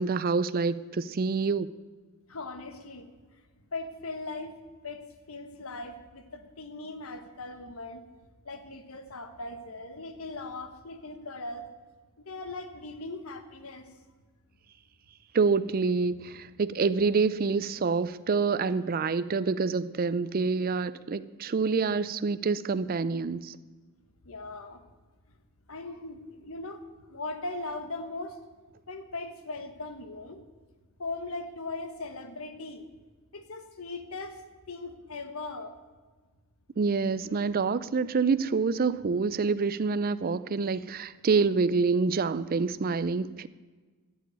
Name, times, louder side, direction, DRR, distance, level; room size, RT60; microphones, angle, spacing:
voice 1, 0.0-1.7 15.3-23.6 36.8-43.5, right 4 dB, 40° right, 0.4 m, -27 dB
voice 2, 2.3-3.1 3.7-4.6 4.8-8.0 8.4-11.7 12.2-13.9 24.2-24.8 25.7-26.8 27.1-28.4 28.9-30.4 31.0-32.9 33.3-34.4 34.7-35.8, left 2 dB, 70° left, 1.3 m, -39 dB
12.5 x 7.0 x 9.4 m
head